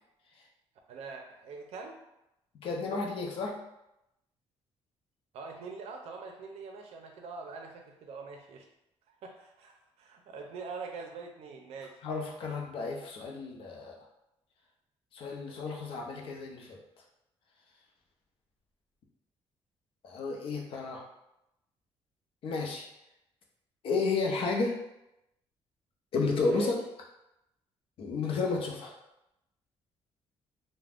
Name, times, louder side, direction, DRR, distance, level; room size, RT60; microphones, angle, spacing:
voice 1, 0.9-2.0 5.3-8.7 9.1-12.0 26.4-26.7, right 4 dB, 75° right, 3 dB, 0.5 m, -44 dB
voice 2, 2.5-3.5 12.0-14.0 15.1-16.8 20.0-21.0 22.4-22.8 23.8-24.7 26.1-26.8 28.0-28.9, left 4 dB, 60° left, 0 dB, 0.5 m, -32 dB
2.4 x 2.1 x 3.3 m, 0.87 s
cardioid pair, 140°, 11 cm